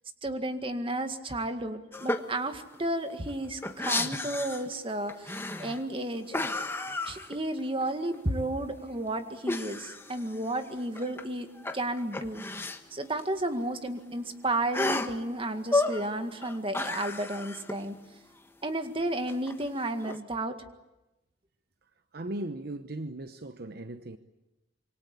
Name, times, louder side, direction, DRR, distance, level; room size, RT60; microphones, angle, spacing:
voice 1, 0.2-6.3 7.1-12.4 12.9-18.0 18.6-20.6, right 1 dB, 30° right, 1.9 m, -32 dB
sound 1, 1.9-2.3 2.7-2.8 3.1-4.7 5.1-5.9 6.3-7.8 8.1-8.2 9.5-11.3 11.6-12.8 13.2-13.3 13.5-13.6 14.7-15.2 15.6-16.1 16.4-17.8 19.3-20.2, left 2 dB, 15° left, 1.3 m, -32 dB
voice 2, 22.1-24.2, right 1 dB, 55° right, 1.0 m, -37 dB
26.5 x 24.0 x 8.4 m
head